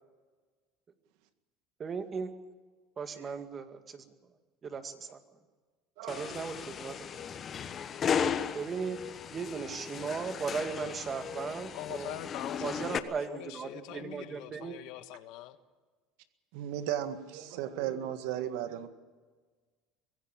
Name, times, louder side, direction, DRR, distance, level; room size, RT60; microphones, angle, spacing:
voice 1, 1.8-2.3 3.0-4.1 4.6-5.2 6.1-6.9 8.5-9.0 9.3-12.2 12.6-14.7, right 5 dB, 30° right, 2.2 m, -37 dB
voice 2, 6.0-6.6 16.5-18.9, right 11 dB, 75° right, 1.8 m, -36 dB
sound 1, 6.1-13.0, left 7 dB, 35° left, 1.2 m, -36 dB
voice 3, 11.7-15.6, left 13 dB, 70° left, 1.4 m, -43 dB
24.5 x 16.5 x 7.4 m
supercardioid pair, 115°, 0 cm